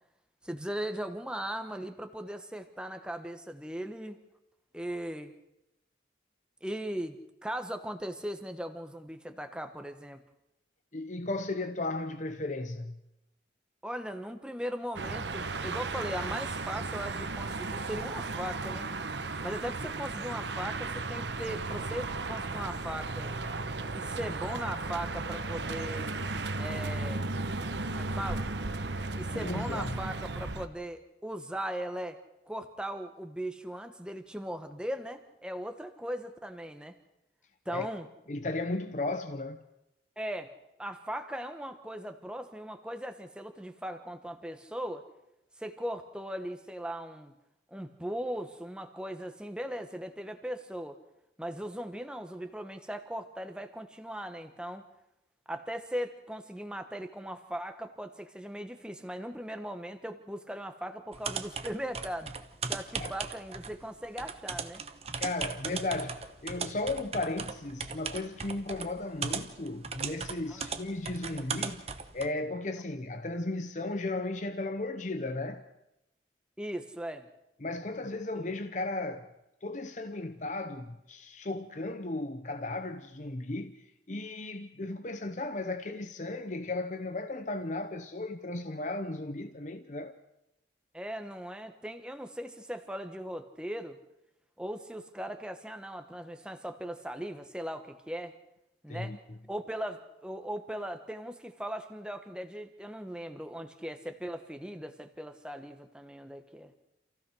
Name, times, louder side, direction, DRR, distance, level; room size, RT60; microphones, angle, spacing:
voice 1, 0.4-4.2 4.7-5.3 6.6-7.2 7.4-10.2 13.8-18.9 19.4-23.3 23.9-26.2 26.6-27.3 27.9-28.5 29.2-32.2 32.5-36.9 37.6-38.1 40.2-40.5 40.8-45.0 45.6-47.3 47.7-51.0 51.4-54.8 55.5-62.3 62.7-64.8 70.5-70.7 76.6-77.3 78.4-78.5 90.9-94.0 94.6-98.3 98.8-99.1 99.5-106.7, equal, 5° right, 1.3 m, -38 dB
voice 2, 10.9-13.0 29.3-30.0 37.7-37.9 38.3-39.6 63.0-63.2 65.2-71.8 72.1-75.6 77.6-79.3 79.6-83.7 84.1-90.1 98.9-99.2, left 2 dB, 40° left, 0.9 m, -35 dB
sound 1, 14.9-30.7, right 3 dB, 70° right, 1.2 m, -35 dB
sound 2, 61.1-72.3, right 5 dB, 35° right, 1.1 m, -38 dB
28.0 x 15.5 x 6.3 m
head